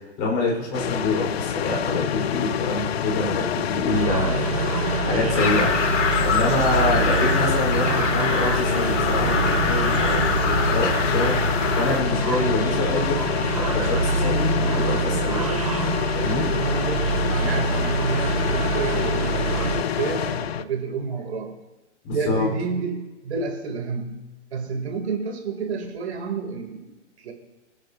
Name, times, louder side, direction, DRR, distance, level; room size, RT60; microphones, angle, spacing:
voice 1, 0.2-5.9 6.2-13.3 13.6-15.4 16.1-16.5 22.0-22.5, left 2 dB, 25° left, -3 dB, 5.4 m, -26 dB
sound 1, 0.7-20.6, left 10 dB, 55° left, 0.7 m, -26 dB
sound 2, 3.9-19.8, right 6 dB, 30° right, 0.4 m, -26 dB
sound 3, 5.4-12.0, left 5 dB, 75° left, 2.3 m, -25 dB
voice 2, 16.7-21.5 22.1-27.3, right 5 dB, 60° right, 2 dB, 3.8 m, -30 dB
26.5 x 9.4 x 3.0 m, 1.1 s
hypercardioid pair, 155°, 36 cm